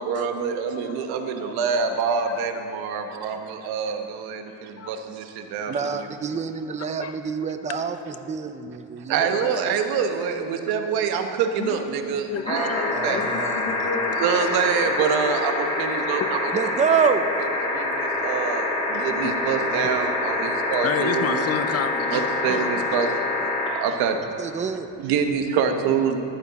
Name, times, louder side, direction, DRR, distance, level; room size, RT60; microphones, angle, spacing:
voice 1, 0.0-5.8 9.1-12.7 13.0-13.2 14.2-16.5 17.7-21.4 22.1-23.1 23.7-24.2 25.0-26.2, right 6 dB, 90° right, 6 dB, 1.2 m, -25 dB
voice 2, 0.8-1.1 1.4-1.5 1.9-2.0 2.2-2.6 3.8-4.0 4.8-4.9 7.0-7.1 10.7-10.8 11.6-11.8 12.3-14.2 16.2-16.3 17.7-17.9 19.2-19.6 19.8-19.9 20.8-22.7, left 7 dB, 40° left, 8 dB, 0.8 m, -31 dB
voice 3, 5.7-9.3 12.9-13.9 16.5-17.3 23.7-23.8 24.2-24.9, right 6 dB, 20° right, 9 dB, 0.5 m, -27 dB
sound 1, 12.4-23.7 25.1-25.2, left 2 dB, 15° left, 3.0 m, -26 dB
14.5 x 11.0 x 4.1 m, 2.7 s
cardioid pair, 125°, 36 cm